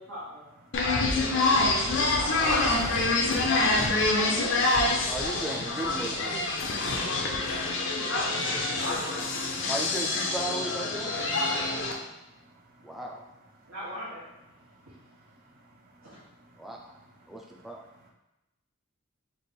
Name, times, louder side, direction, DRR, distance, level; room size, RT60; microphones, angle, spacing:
voice 1, 0.0-0.5 1.1-4.6 8.0-9.3 11.7-12.1 13.7-14.3 16.0-16.2, equal, 75° right, -10 dB, 1.1 m, -39 dB
sound 1, 0.7-11.9, left 2 dB, 55° left, 0.5 m, -26 dB
voice 2, 0.7-1.2 3.4-3.7 6.7-8.1 9.6-9.7 11.5-13.0 13.6-13.7 14.5-17.4 17.9-18.1, right 1 dB, 45° right, -1 dB, 0.7 m, -59 dB
voice 3, 5.1-6.6 9.7-11.1 12.8-13.2 16.6-16.9 17.3-17.8, right 1 dB, ahead, -1 dB, 0.3 m, -36 dB
3.3 x 2.5 x 4.2 m, 0.97 s
head